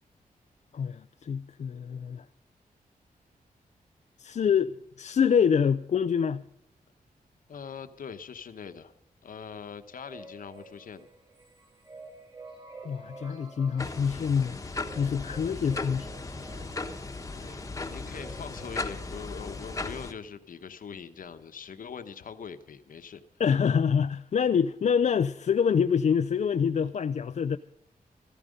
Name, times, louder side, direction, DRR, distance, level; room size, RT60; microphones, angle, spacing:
voice 1, 0.7-2.2 4.2-6.4 12.8-16.1 23.4-27.6, left 7 dB, 50° left, 0.4 m, -26 dB
voice 2, 7.5-8.9 9.2-11.1 17.3-23.2, left 6 dB, 65° left, 1.1 m, -42 dB
sound 1, 9.9-19.7, right 3 dB, 30° right, 3.9 m, -50 dB
sound 2, 13.8-20.1, left 3 dB, 20° left, 1.1 m, -37 dB
15.0 x 14.0 x 5.2 m
wide cardioid pair, 145°, 15 cm